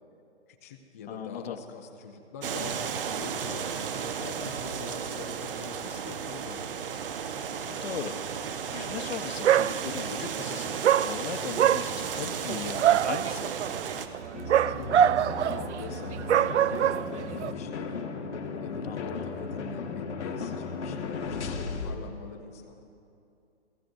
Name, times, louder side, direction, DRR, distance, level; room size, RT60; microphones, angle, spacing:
voice 1, 0.5-3.7 4.2-6.9 14.4-18.0 18.6-22.8, left 5 dB, 15° left, 4 dB, 0.5 m, -44 dB
voice 2, 1.1-1.6 7.6-8.2 8.6-13.5 18.8-19.1, left 8 dB, 60° left, 8 dB, 1.0 m, -38 dB
sound 1, 2.4-14.1, right 7 dB, 50° right, 1.0 m, -34 dB
Dog, 9.0-9.2 9.4-10.2 10.8-17.5, right 10 dB, 75° right, 0.5 m, -25 dB
sound 2, 14.3-22.0, left 5 dB, 75° left, 1.4 m, -36 dB
28.5 x 15.5 x 2.6 m, 2.6 s
hypercardioid pair, 155°, 34 cm